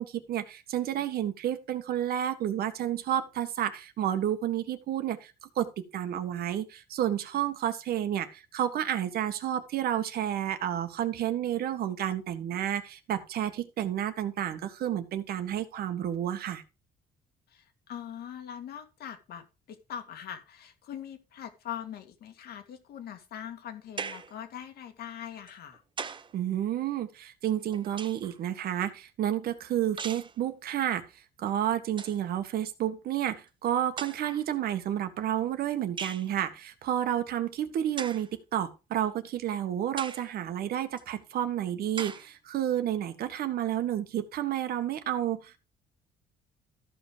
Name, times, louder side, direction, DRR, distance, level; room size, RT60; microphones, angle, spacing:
voice 1, 0.0-16.6 26.3-45.6, right 11 dB, 65° right, 8 dB, 1.7 m, -31 dB
voice 2, 17.5-25.8, left 9 dB, 65° left, 8 dB, 2.2 m, -42 dB
sound 1, 24.0-24.4 25.5-26.4 27.5-28.4 30.0-30.4 31.5-31.6 31.9-32.2 33.2-33.3 34.0-34.5 36.0-36.3 38.0-38.3 39.0-39.1 40.0-40.3 41.0-41.1 42.0-42.3, right 5 dB, 30° right, 0.9 m, -39 dB
14.0 x 5.5 x 5.1 m, 0.29 s
cardioid pair, 110°, 17 cm